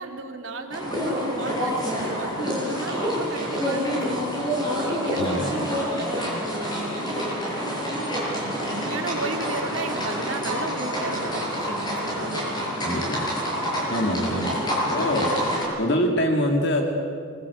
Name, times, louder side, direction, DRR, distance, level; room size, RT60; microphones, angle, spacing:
voice 1, 0.0-4.2 4.6-7.7 8.2-13.4 14.1-14.8, right 2 dB, 70° right, 4 dB, 2.7 m, -35 dB
sound 1, 0.7-15.6, equal, 20° left, 7.4 m, -27 dB
voice 2, 5.2-5.5 12.8-13.2 13.9-14.6 14.9-15.3 15.8-16.8, equal, 55° left, 2 dB, 2.5 m, -24 dB
26.0 x 21.5 x 8.3 m, 2.5 s
head